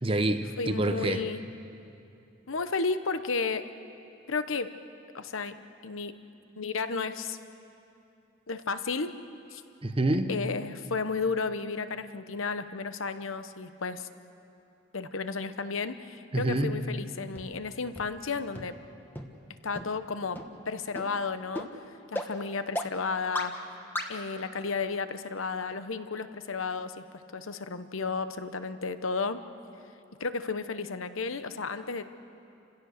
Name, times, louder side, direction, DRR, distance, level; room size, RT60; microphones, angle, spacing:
voice 1, 0.0-1.2 9.8-10.3 16.3-16.8, right 2 dB, 25° right, 8 dB, 0.9 m, -27 dB
voice 2, 0.6-1.4 2.5-3.7 4.3-4.7 5.1-5.6 5.8-6.1 6.6-7.4 8.5-9.1 9.5-9.6 10.3-14.1 14.9-18.7 19.6-20.4 20.7-21.7 22.1-23.5 24.1-27.0 27.3-29.4 30.2-32.1, left 4 dB, 75° left, 11 dB, 0.9 m, -33 dB
sound 1, 17.4-17.5 18.0-18.1 18.6-18.7 19.2-19.3 19.8-19.9 20.4-20.5 21.0-21.1 21.6-21.7 22.2-22.3 22.8-22.9 23.4-23.5 24.0-24.1, left 1 dB, 10° left, 1.2 m, -33 dB
29.5 x 16.5 x 6.6 m, 2.7 s
head